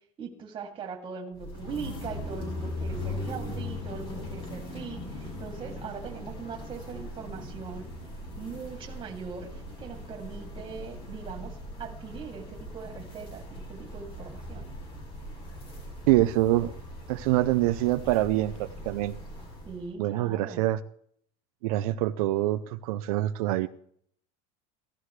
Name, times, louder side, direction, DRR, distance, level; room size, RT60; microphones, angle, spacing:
voice 1, 0.2-7.9 8.4-14.6 19.6-20.6, right 5 dB, 25° right, 2 dB, 2.6 m, -41 dB
sound 1, 1.3-19.9, left 1 dB, 30° left, 5.6 m, -39 dB
voice 2, 16.1-16.8 17.1-19.2 20.0-20.8 21.6-23.7, right 15 dB, 80° right, 10 dB, 0.6 m, -25 dB
16.0 x 13.0 x 3.3 m, 0.64 s
supercardioid pair, 145°, 18 cm